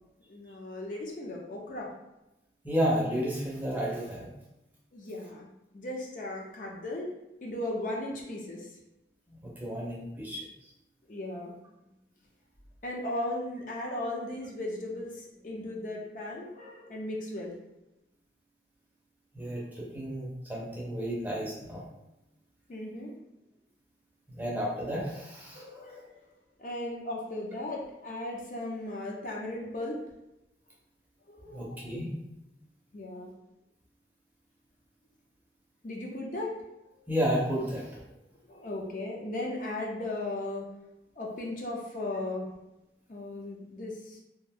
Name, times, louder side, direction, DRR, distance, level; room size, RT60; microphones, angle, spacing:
voice 1, 0.3-1.9 4.9-7.1 7.4-8.7 11.1-11.5 12.8-17.6 22.7-23.2 25.5-26.3 26.6-30.0 31.3-31.9 32.9-33.3 35.8-36.6 37.0-37.1 38.5-40.7 41.2-42.5 43.1-44.2, left 1 dB, 45° left, -1 dB, 0.4 m, -37 dB
voice 2, 2.6-4.3 9.4-10.4 19.3-21.8 24.3-25.7 31.5-32.1 37.1-38.0, equal, 10° right, -4 dB, 0.5 m, -32 dB
2.5 x 2.2 x 3.4 m, 0.92 s
head